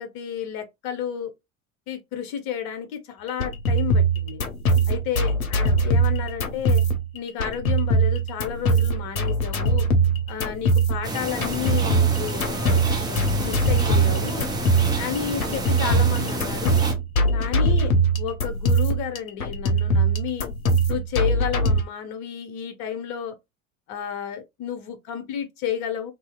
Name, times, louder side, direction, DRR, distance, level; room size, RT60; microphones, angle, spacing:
voice 1, 0.0-1.3 1.9-4.4 4.9-6.8 7.1-9.9 10.3-14.5 15.0-16.8 17.3-20.5 20.9-23.4 23.9-26.1, left 8 dB, 45° left, 0.8 m, -32 dB
sound 1, 3.3-21.8, right 2 dB, 80° left, 0.6 m, -22 dB
sound 2, 11.0-16.9, right 2 dB, 10° right, 0.5 m, -29 dB
2.7 x 2.0 x 2.2 m
figure-of-eight pair, 70°, 42 cm